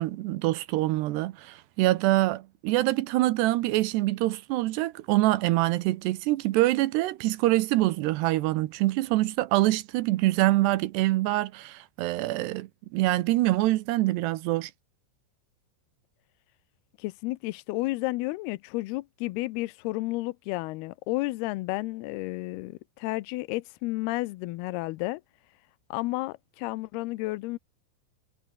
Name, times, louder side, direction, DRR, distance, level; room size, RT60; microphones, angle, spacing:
voice 1, 0.0-14.7, right 17 dB, 80° right, 2.7 m, -25 dB
voice 2, 17.0-25.2 25.9-27.6, left 20 dB, 80° left, 2.3 m, -32 dB
omnidirectional pair, 5.3 m